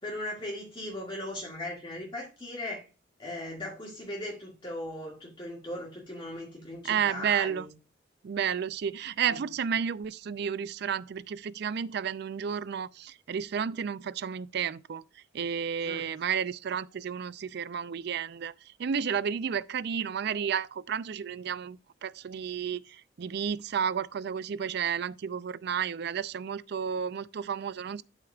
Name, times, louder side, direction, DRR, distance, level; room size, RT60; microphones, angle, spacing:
voice 1, 0.0-2.8 3.2-7.7 9.3-9.4 15.8-16.1, left 1 dB, 30° left, 2.1 m, -38 dB
voice 2, 6.8-7.7 8.2-15.0 15.3-18.5 18.8-28.0, right 7 dB, 65° right, 0.4 m, -32 dB
12.0 x 4.5 x 2.4 m
head